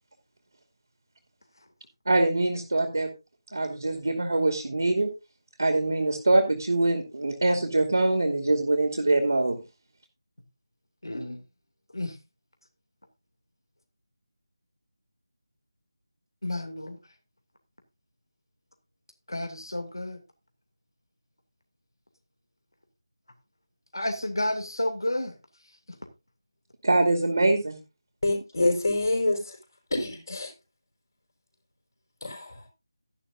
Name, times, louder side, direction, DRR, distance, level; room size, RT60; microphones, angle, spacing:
voice 1, 2.1-3.1 3.5-5.1 5.6-9.6 26.8-27.8, right 2 dB, 55° right, 6 dB, 2.5 m, -24 dB
voice 2, 11.0-11.4 11.9-12.2 16.4-17.0 19.3-20.2 23.9-25.4, left 1 dB, 65° left, 6 dB, 2.4 m, -31 dB
voice 3, 28.2-29.6 29.9-30.5 32.2-32.6, left 2 dB, 50° left, 0 dB, 4.8 m, -26 dB
14.0 x 11.0 x 2.6 m, 0.26 s
figure-of-eight pair, 160°, 2 cm